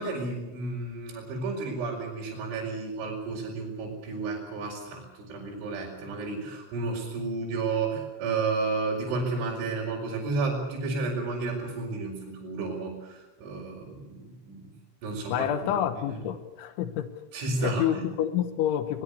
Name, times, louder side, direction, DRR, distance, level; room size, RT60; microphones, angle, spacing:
voice 1, 0.0-14.7 15.0-15.5 16.0-16.2 17.3-18.0, right 3 dB, 75° right, -3 dB, 7.1 m, -32 dB
voice 2, 15.3-17.1 17.6-19.0, left 10 dB, 80° left, 10 dB, 3.5 m, -28 dB
22.0 x 21.0 x 8.2 m, 1.0 s
omnidirectional pair, 5.6 m